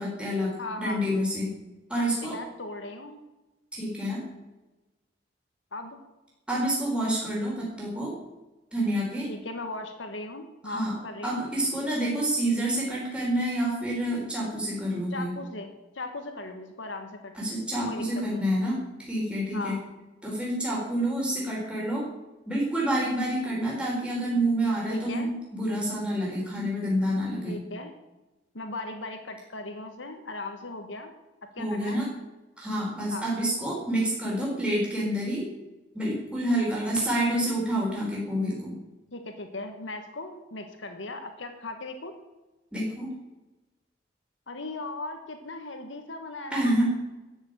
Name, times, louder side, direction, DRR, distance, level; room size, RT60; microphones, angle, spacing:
voice 1, 0.0-1.5 1.9-2.4 3.7-4.2 6.5-8.1 8.7-9.3 10.6-10.9 11.2-15.3 17.3-19.7 20.2-22.1 22.5-27.6 31.6-32.1 32.6-35.5 35.9-38.8 42.7-43.1 46.5-47.1, right 1 dB, 5° right, -5 dB, 4.4 m, -28 dB
voice 2, 0.6-1.0 2.0-3.2 5.7-6.0 9.3-11.4 15.1-17.3 17.9-18.5 19.5-19.8 24.9-25.3 27.5-27.9 28.5-31.1 31.5-32.0 33.1-33.3 39.1-42.2 44.5-46.8, left 2 dB, 80° left, 6 dB, 1.5 m, -38 dB
13.5 x 7.2 x 9.0 m, 1.1 s
head